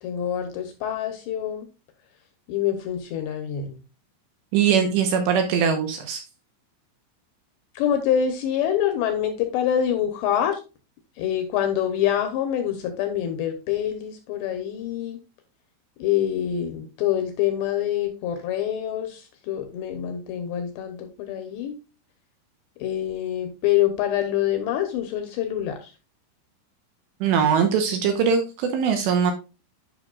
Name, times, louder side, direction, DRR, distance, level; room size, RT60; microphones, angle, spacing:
voice 1, 0.0-1.7 2.5-3.8 7.8-10.6 11.2-15.2 16.0-21.8 22.8-25.9, left 10 dB, 75° left, 7 dB, 2.7 m, -26 dB
voice 2, 4.5-6.2 27.2-29.3, right 7 dB, 75° right, 6 dB, 2.7 m, -21 dB
11.5 x 5.7 x 2.3 m, 0.30 s
omnidirectional pair, 5.8 m